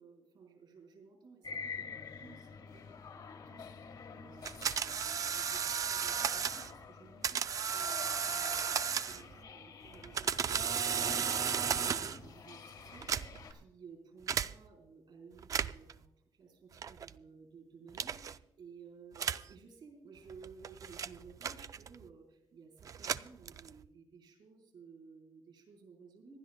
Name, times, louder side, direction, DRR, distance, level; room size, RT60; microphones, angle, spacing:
voice 1, 0.0-26.4, right 5 dB, 65° right, 4 dB, 4.1 m, -57 dB
sound 1, 1.4-13.5, left 5 dB, 60° left, 1.4 m, -48 dB
sound 2, 4.4-6.7 7.2-9.4 9.9-12.3 12.9-13.5 14.3-14.5 15.4-15.9 16.8-17.1 17.9-18.4 19.1-19.5 20.3-22.0 22.8-23.9, right 7 dB, 45° right, 0.4 m, -34 dB
26.0 x 11.5 x 2.2 m, 0.93 s
cardioid pair, 140°, 8 cm